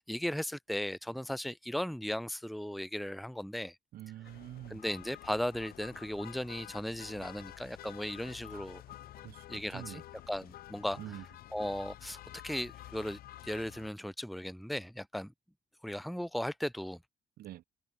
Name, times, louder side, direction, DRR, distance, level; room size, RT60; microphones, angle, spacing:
voice 1, 0.0-3.8 4.7-8.8 9.5-10.0 10.3-11.0 11.5-15.3 15.8-17.0, equal, ahead, 0.8 m, -37 dB
voice 2, 3.9-4.8 8.5-8.7 9.2-10.0 11.0-11.2 17.4-17.6, right 14 dB, 75° right, 2.2 m, -46 dB
sound 1, 4.2-13.9, left 13 dB, 80° left, 7.0 m, -50 dB
cardioid pair, 170°, 15 cm